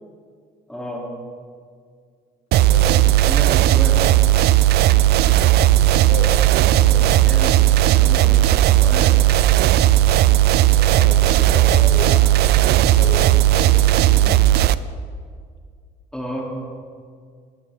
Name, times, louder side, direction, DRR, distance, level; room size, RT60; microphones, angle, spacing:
voice 1, 0.7-1.1 3.2-4.1 7.0-9.2 16.1-16.4, equal, 5° left, -3 dB, 3.3 m, -32 dB
sound 1, 2.5-14.8, right 13 dB, 75° right, 0.5 m, -15 dB
voice 2, 2.6-3.0 5.6-7.1 10.7-14.4, left 2 dB, 80° left, 0 dB, 3.3 m, -33 dB
21.5 x 15.5 x 3.8 m, 2.1 s
cardioid pair, 110°, 17 cm